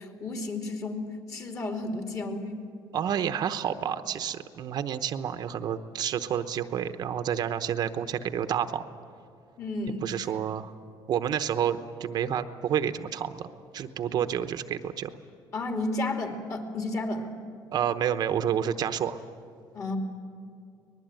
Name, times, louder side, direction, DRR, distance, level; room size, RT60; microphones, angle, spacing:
voice 1, 0.0-2.7 9.6-10.1 15.5-17.3 19.7-20.0, left 2 dB, 40° left, 4 dB, 3.0 m, -32 dB
voice 2, 2.9-8.9 10.0-10.7 11.1-13.4 13.7-15.1 17.7-19.2, right 9 dB, 55° right, 10 dB, 0.9 m, -29 dB
24.5 x 20.0 x 9.1 m, 2.4 s
cardioid pair, 140°, 8 cm